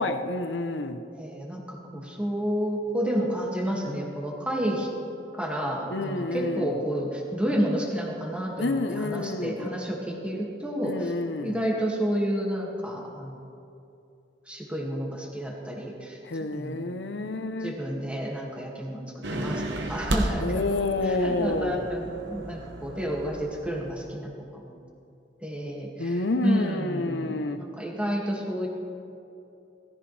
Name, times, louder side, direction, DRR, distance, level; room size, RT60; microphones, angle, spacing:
voice 1, 0.0-1.0 5.9-6.7 8.6-9.7 10.8-11.6 16.2-17.7 20.4-21.8 26.0-27.6, left 2 dB, 75° left, 8 dB, 0.8 m, -29 dB
voice 2, 1.1-4.9 5.3-11.1 11.4-13.4 14.5-16.2 16.5-16.8 17.2-19.0 19.3-19.6 19.9-24.7 25.4-28.7, equal, 5° right, -2 dB, 2.0 m, -30 dB
sound 1, 19.2-24.1, right 1 dB, 75° right, 1.2 m, -33 dB
17.5 x 15.0 x 3.3 m, 2.7 s
head